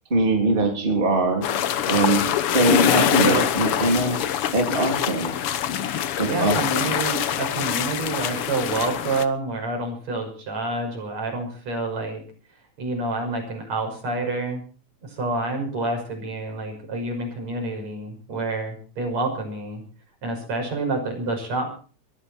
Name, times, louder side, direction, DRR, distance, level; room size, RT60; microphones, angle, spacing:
voice 1, 0.1-1.5 1.8-2.2 2.5-4.2 4.5-5.3 6.2-6.9, right 2 dB, 15° right, 2 dB, 3.2 m, -22 dB
sound 1, 1.4-9.3, left 10 dB, 60° left, 1.6 m, -24 dB
voice 2, 3.2-3.6 6.3-12.2 12.8-14.6 15.0-19.8 20.2-21.7, right 2 dB, 65° right, 3 dB, 7.0 m, -28 dB
22.0 x 14.5 x 4.4 m, 0.39 s
omnidirectional pair, 3.3 m